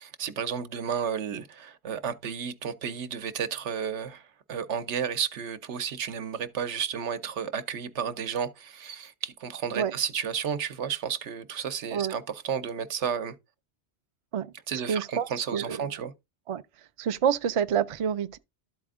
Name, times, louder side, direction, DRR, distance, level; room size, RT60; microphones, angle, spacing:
voice 1, 0.0-13.3 14.7-16.1, right 7 dB, 90° right, 1.1 m, -32 dB
voice 2, 14.9-15.8 16.5-16.6 17.0-18.4, right 8 dB, 50° right, 0.4 m, -28 dB
12.5 x 4.2 x 3.6 m
omnidirectional pair, 1.1 m